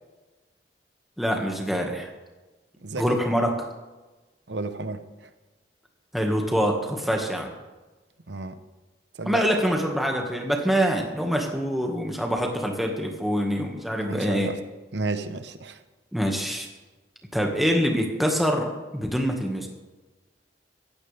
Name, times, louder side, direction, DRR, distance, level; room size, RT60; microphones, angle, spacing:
voice 1, 1.2-2.1 3.0-3.7 6.1-7.5 9.3-14.5 16.1-16.7 17.3-19.7, equal, ahead, 1 dB, 1.8 m, -25 dB
voice 2, 2.8-3.2 4.5-5.3 8.3-8.6 9.1-9.4 14.0-14.6 14.9-15.8, right 3 dB, 80° right, 10 dB, 1.0 m, -32 dB
17.0 x 15.5 x 3.5 m, 1.2 s
head